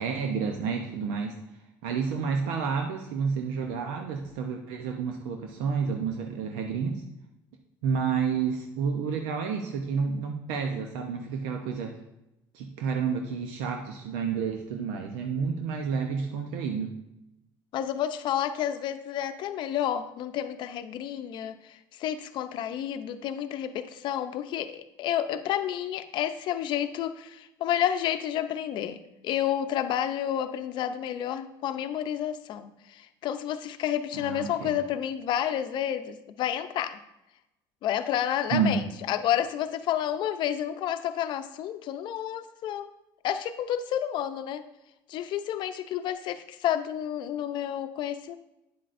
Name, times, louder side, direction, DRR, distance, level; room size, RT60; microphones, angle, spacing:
voice 1, 0.0-1.4 1.8-7.0 7.8-11.9 12.5-16.9 34.1-34.7 38.5-38.8, right 6 dB, 90° right, 3 dB, 0.8 m, -30 dB
voice 2, 17.7-37.0 37.8-42.9 43.2-44.6 45.1-48.4, left 10 dB, 55° left, 10 dB, 0.6 m, -30 dB
9.5 x 7.6 x 2.6 m, 0.90 s
cardioid pair, 120°, 9 cm